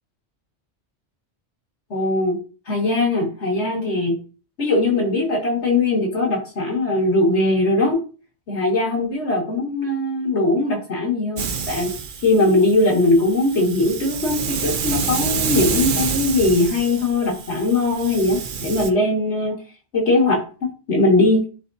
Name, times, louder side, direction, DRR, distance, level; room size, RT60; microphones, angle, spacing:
voice 1, 1.9-2.4 2.7-4.2 4.6-8.0 8.5-11.9 12.2-19.6 19.9-21.4, left 2 dB, 75° left, -1 dB, 2.4 m, -20 dB
Hiss, 11.4-18.9, right 6 dB, 55° right, 0.8 m, -28 dB
10.5 x 3.7 x 2.7 m, 0.35 s
omnidirectional pair, 1.2 m